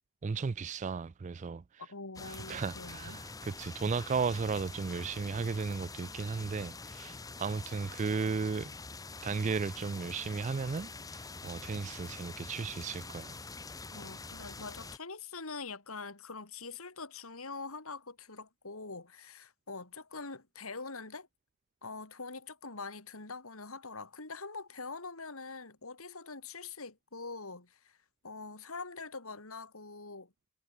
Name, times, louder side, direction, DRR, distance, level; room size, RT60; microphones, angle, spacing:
voice 1, 0.2-1.9 2.2-8.7 9.2-13.3, right 5 dB, 35° right, 0.3 m, -35 dB
voice 2, 1.8-3.2 13.9-21.3 21.8-28.0 28.2-30.3, left 4 dB, 85° left, 3.4 m, -44 dB
sound 1, 2.2-15.0, left 3 dB, 15° left, 0.8 m, -45 dB
head